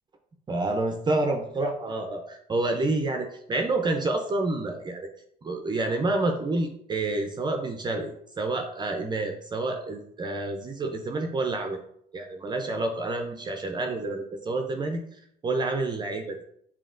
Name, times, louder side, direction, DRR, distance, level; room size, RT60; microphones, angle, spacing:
voice 1, 0.5-5.1 5.4-11.8 12.1-15.0 15.4-16.4, right 2 dB, 25° right, 3 dB, 0.5 m, -28 dB
7.0 x 2.8 x 2.5 m, 0.69 s
cardioid pair, 110°, 17 cm